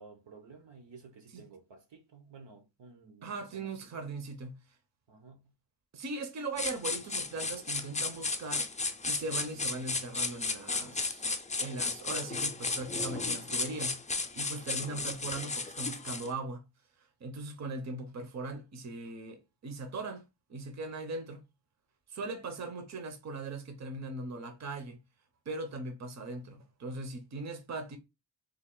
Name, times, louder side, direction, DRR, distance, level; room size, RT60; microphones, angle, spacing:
voice 1, 0.0-4.0 5.1-5.5, right 4 dB, 85° right, 1.1 m, -54 dB
voice 2, 3.2-4.6 5.9-8.7 9.0-11.3 11.6-16.6 17.2-21.4 22.1-25.0 25.5-28.0, right 3 dB, 40° right, 0.6 m, -39 dB
sound 1, 6.6-16.3, left 3 dB, 20° left, 0.4 m, -34 dB
3.5 x 2.4 x 3.7 m
wide cardioid pair, 140°, 42 cm